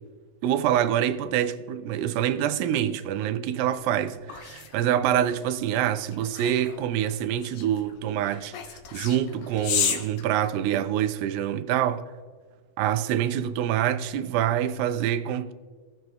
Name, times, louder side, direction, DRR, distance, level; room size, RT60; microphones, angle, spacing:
voice 1, 0.4-8.5 8.9-12.0 12.8-15.5, right 10 dB, 85° right, 2.4 m, -26 dB
sound 1, 3.6-11.1, left 7 dB, 75° left, 1.6 m, -34 dB
16.5 x 7.7 x 2.2 m
omnidirectional pair, 4.1 m